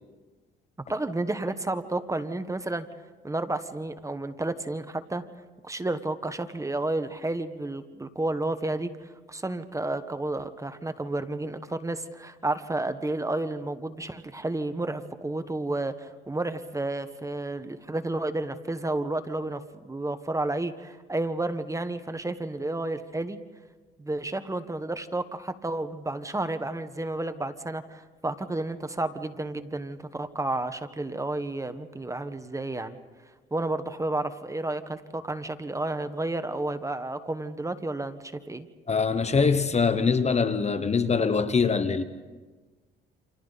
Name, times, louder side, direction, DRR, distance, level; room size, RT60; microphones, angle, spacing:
voice 1, 0.9-2.9 3.2-5.2 5.6-23.4 24.0-33.0 33.5-38.7, right 2 dB, 15° right, 1.2 m, -31 dB
voice 2, 38.9-42.0, left 5 dB, 35° left, 1.1 m, -23 dB
29.5 x 27.0 x 4.1 m
cardioid pair, 90°, 20 cm